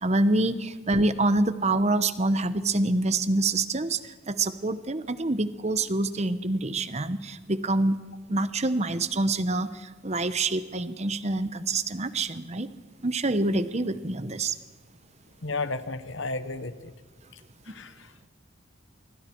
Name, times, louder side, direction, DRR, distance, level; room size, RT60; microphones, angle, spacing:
voice 1, 0.0-8.0 8.3-12.7 13.0-14.6, right 2 dB, 30° right, 13 dB, 0.9 m, -26 dB
voice 2, 15.4-16.9 17.7-18.1, left 3 dB, 60° left, 12 dB, 1.2 m, -33 dB
26.5 x 23.0 x 4.6 m, 1.3 s
head